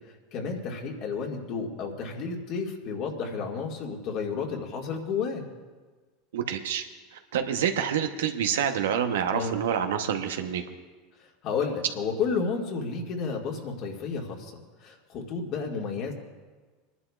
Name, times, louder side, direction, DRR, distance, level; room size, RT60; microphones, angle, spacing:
voice 1, 0.3-5.4 9.3-9.5 11.4-14.5 14.8-16.1, left 5 dB, 55° left, 1 dB, 2.0 m, -31 dB
voice 2, 6.3-6.8 7.1-10.6, right 8 dB, 85° right, 7 dB, 0.9 m, -27 dB
28.5 x 11.0 x 2.4 m, 1.4 s
hypercardioid pair, 100°, 0 cm